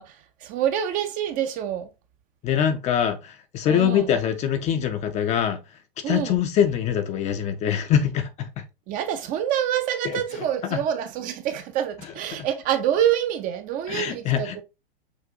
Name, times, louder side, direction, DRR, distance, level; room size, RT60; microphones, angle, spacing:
voice 1, 0.0-1.9 3.7-4.2 6.0-6.4 8.9-14.6, right 10 dB, 30° right, 0.5 m, -26 dB
voice 2, 2.4-5.6 6.1-8.5 10.0-10.2 10.7-10.8 13.9-14.6, left 9 dB, 25° left, 0.5 m, -23 dB
6.1 x 2.5 x 2.7 m
hypercardioid pair, 110°, 29 cm